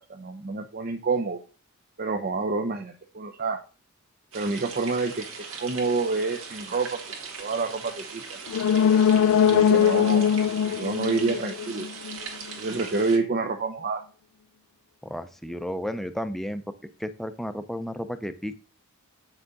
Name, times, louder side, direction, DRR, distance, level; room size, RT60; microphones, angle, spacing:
voice 1, 0.1-1.4 2.0-3.6 4.3-5.3 5.6-7.1 7.4-8.4 9.5-10.3 10.6-11.9 12.6-14.0, right 3 dB, 45° right, 5 dB, 0.6 m, -28 dB
sound 1, 4.3-13.2, right 5 dB, 65° right, 1.8 m, -40 dB
sound 2, 8.5-12.2 12.5-12.6, left 8 dB, 75° left, 0.3 m, -21 dB
voice 2, 15.0-16.7 17.0-18.6, equal, ahead, 10 dB, 0.5 m, -33 dB
7.9 x 6.0 x 3.9 m, 0.35 s
head